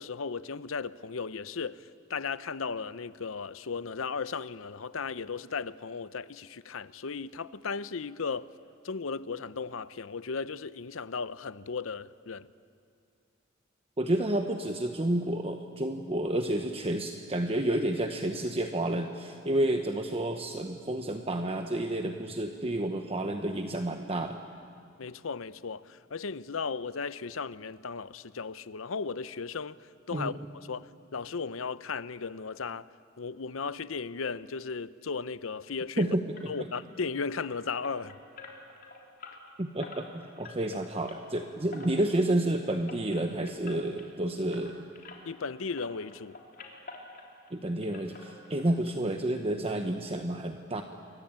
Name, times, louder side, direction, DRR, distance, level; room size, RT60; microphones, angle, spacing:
voice 1, 0.0-8.5 8.8-12.5 25.0-29.8 30.1-30.3 30.7-32.9 33.2-36.1 36.5-38.2 45.2-46.4, left 5 dB, 75° left, 0.7 m, -36 dB
voice 2, 14.0-24.4 30.1-30.3 36.0-36.3 39.6-40.1 40.4-44.9 47.5-50.8, right 1 dB, 30° right, 1.1 m, -30 dB
sound 1, 36.3-45.5 45.8-47.6 47.8-48.9 49.2-49.3 49.7-49.8 50.2-50.3, left 3 dB, 50° left, 3.9 m, -49 dB
29.0 x 23.5 x 8.8 m
head